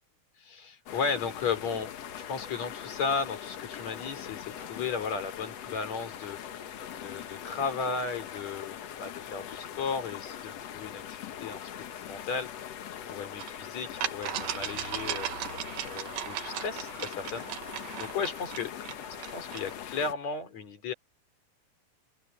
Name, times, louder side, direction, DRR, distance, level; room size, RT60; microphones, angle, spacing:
voice 1, 0.4-6.7 7.0-11.6 11.9-12.5 13.1-15.3 15.8-17.6 18.0-18.7 19.1-20.9, left 5 dB, 45° left, 4.5 m, -35 dB
sound 1, 0.9-20.1, left 9 dB, 60° left, 1.8 m, -42 dB
sound 2, 13.4-13.5 14.0-19.7, right 12 dB, 75° right, 3.1 m, -37 dB
open air
omnidirectional pair, 4.5 m